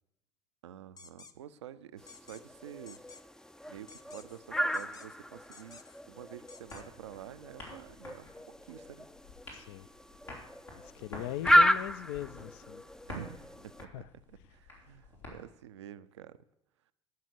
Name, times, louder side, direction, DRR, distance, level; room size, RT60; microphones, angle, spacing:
voice 1, 0.6-3.0 3.7-5.8 6.1-9.1 13.1-16.4, right 10 dB, 80° right, 13 dB, 0.5 m, -49 dB
sound 1, 1.0-1.3 2.1-2.4 2.9-3.2 3.9-4.4 4.7-5.2 5.5-6.0 6.5-6.8, left 4 dB, 25° left, 0.7 m, -53 dB
sound 2, 2.0-13.8, equal, 5° left, 0.4 m, -33 dB
sound 3, 6.7-15.4, left 2 dB, 85° left, 2.9 m, -49 dB
voice 2, 9.5-9.9 10.9-12.8 13.9-14.1, left 13 dB, 65° left, 16 dB, 0.4 m, -39 dB
14.0 x 5.7 x 6.5 m, 0.88 s
figure-of-eight pair, 65°, 15 cm